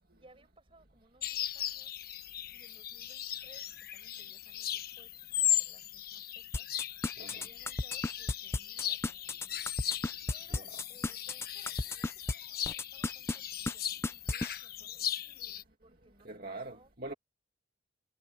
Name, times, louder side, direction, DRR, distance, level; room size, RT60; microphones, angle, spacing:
voice 1, 0.1-1.9 2.5-9.6 10.3-15.1 15.8-16.9, right 2 dB, 30° right, 5.5 m, -63 dB
sound 1, 1.2-15.6, left 11 dB, 55° left, 1.2 m, -37 dB
sound 2, 6.5-12.3 12.6-13.4 13.7-13.8 14.0-14.5, left 2 dB, 15° left, 0.4 m, -33 dB
voice 2, 7.2-7.5 10.5-10.8 16.2-17.1, right 2 dB, 55° right, 2.3 m, -43 dB
head